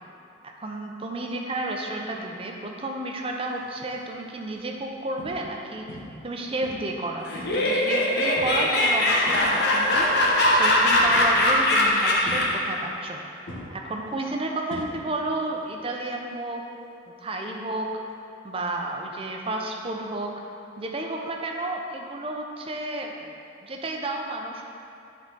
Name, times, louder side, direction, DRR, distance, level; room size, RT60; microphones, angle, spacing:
voice 1, 0.4-5.9 6.2-10.1 10.5-13.2 13.7-16.6 17.2-17.9 18.4-20.3 20.8-23.3 23.6-24.6, right 2 dB, 30° right, 1 dB, 0.7 m, -31 dB
sound 1, 3.5-3.9 4.4-4.6 5.2-5.6 5.9-6.3 6.6-7.7 8.4-8.7 9.0-9.9 11.1-11.6 12.2-13.1 13.5-15.4 15.6-16.0 18.1-18.2, equal, 90° left, 1.6 m, -41 dB
Laughter, 7.3-12.7, left 1 dB, 65° left, 0.9 m, -21 dB
10.5 x 3.9 x 3.8 m, 2.7 s
head